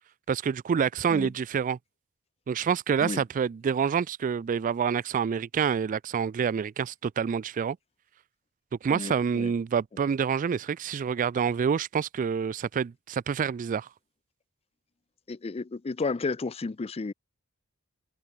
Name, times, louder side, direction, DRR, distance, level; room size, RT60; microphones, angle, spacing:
voice 1, 0.3-1.8 2.5-7.8 8.8-13.9, right 7 dB, 35° right, 0.3 m, -27 dB
voice 2, 8.9-9.5 15.3-17.1, left 3 dB, 25° left, 0.5 m, -32 dB
head